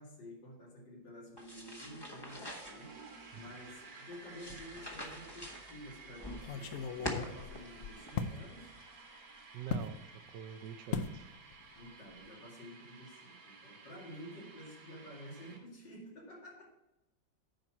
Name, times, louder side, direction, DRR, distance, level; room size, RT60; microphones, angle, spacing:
voice 1, 0.0-2.9 3.3-8.7 11.7-16.7, equal, 80° left, 3.0 m, -51 dB
sound 1, 1.4-8.8, equal, 15° left, 1.0 m, -46 dB
sound 2, 1.8-15.6, right 4 dB, 60° right, 2.1 m, -54 dB
sound 3, 4.5-5.1 5.4-5.5 6.3-8.4 9.7-9.9 10.9-11.2 11.5-11.8 12.1-12.3, left 6 dB, 65° left, 0.8 m, -38 dB
voice 2, 9.5-10.0 10.3-11.4, right 8 dB, 80° right, 1.4 m, -46 dB
9.9 x 4.5 x 6.1 m
omnidirectional pair, 1.9 m